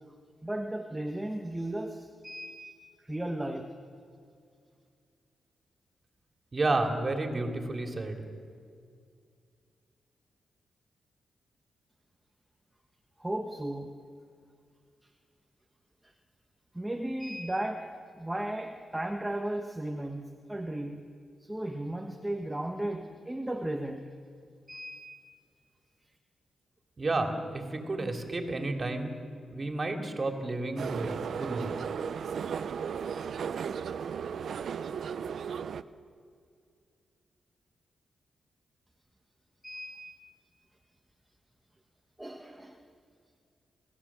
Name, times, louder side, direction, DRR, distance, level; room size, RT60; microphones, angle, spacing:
voice 1, 0.4-2.7 3.0-3.7 13.2-13.9 16.0-16.1 16.7-21.1 21.4-24.1 24.7-25.1 39.6-40.1 42.2-42.8, right 1 dB, 10° right, 3 dB, 1.4 m, -35 dB
voice 2, 6.5-8.3 27.0-29.1 29.5-31.7, right 2 dB, 35° right, 3 dB, 3.0 m, -31 dB
sound 1, 30.8-35.8, right 7 dB, 70° right, 0.6 m, -35 dB
29.0 x 14.5 x 7.5 m, 2.3 s
cardioid pair, 75°, 0 cm